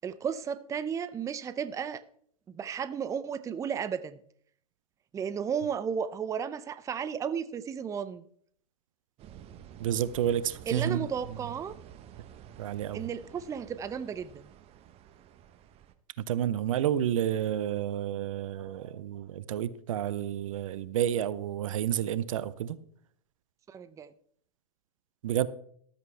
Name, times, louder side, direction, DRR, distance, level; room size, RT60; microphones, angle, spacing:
voice 1, 0.0-2.0 2.5-4.2 5.1-8.2 10.7-11.7 12.9-14.5 23.7-24.1, right 7 dB, 15° right, 0.6 m, -34 dB
sound 1, 9.2-15.9, right 10 dB, 30° right, 1.1 m, -51 dB
voice 2, 9.8-11.4 12.6-13.1 16.2-22.8 25.2-25.5, right 10 dB, 60° right, 0.8 m, -30 dB
13.5 x 13.0 x 3.4 m
figure-of-eight pair, 100°, 19 cm